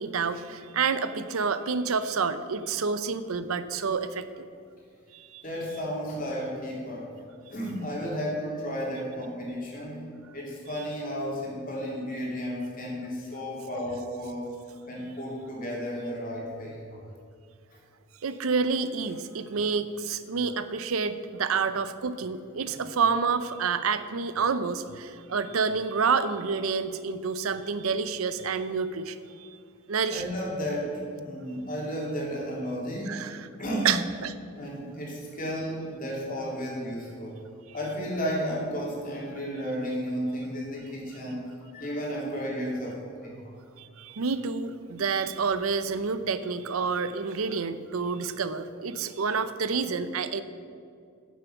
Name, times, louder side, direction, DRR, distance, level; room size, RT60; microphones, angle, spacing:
voice 1, 0.0-4.5 5.1-5.4 18.2-29.6 29.9-30.2 33.1-33.5 33.8-34.3 43.8-50.4, right 5 dB, 90° right, 12 dB, 0.6 m, -28 dB
voice 2, 5.4-7.1 7.5-10.0 10.3-14.5 14.9-17.0 22.6-22.8 30.1-33.2 33.6-34.0 34.6-37.3 37.7-43.5, equal, 40° left, -3 dB, 2.8 m, -33 dB
9.7 x 7.1 x 6.9 m, 2.3 s
head